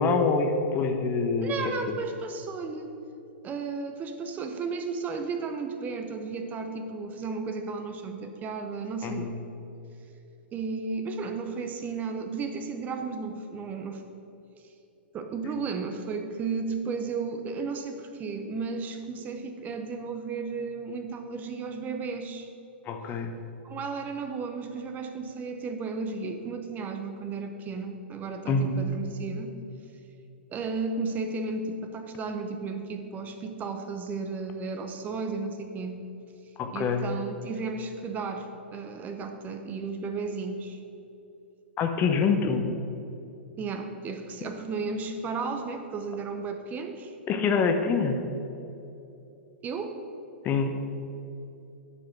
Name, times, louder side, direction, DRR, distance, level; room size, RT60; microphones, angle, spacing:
voice 1, 0.0-1.5 1.9-2.0 9.0-9.4 22.9-23.3 28.5-28.8 36.6-37.1 41.8-42.7 47.3-48.2 50.4-50.8, left 5 dB, 30° left, 6 dB, 0.8 m, -25 dB
voice 2, 1.4-2.9 3.4-9.4 10.5-14.0 15.1-22.5 23.6-29.5 30.5-36.0 36.7-40.8 43.6-47.2 49.6-50.0, right 4 dB, 25° right, 6 dB, 0.8 m, -34 dB
10.5 x 4.9 x 5.9 m, 2.8 s
hypercardioid pair, 110°, 6 cm